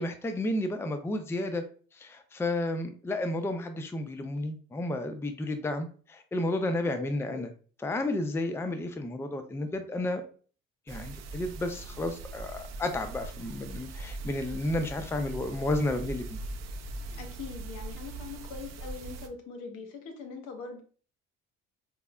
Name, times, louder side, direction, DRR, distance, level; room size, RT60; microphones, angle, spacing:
voice 1, 0.0-1.6 2.0-7.5 7.8-10.2 10.9-16.4, left 1 dB, 10° left, 8 dB, 0.4 m, -32 dB
voice 2, 6.9-7.5 17.1-20.8, left 5 dB, 75° left, 5 dB, 0.9 m, -42 dB
sound 1, 10.9-19.3, right 2 dB, 60° right, 0.6 m, -40 dB
4.6 x 2.0 x 2.2 m, 0.41 s
supercardioid pair, 70°, 31 cm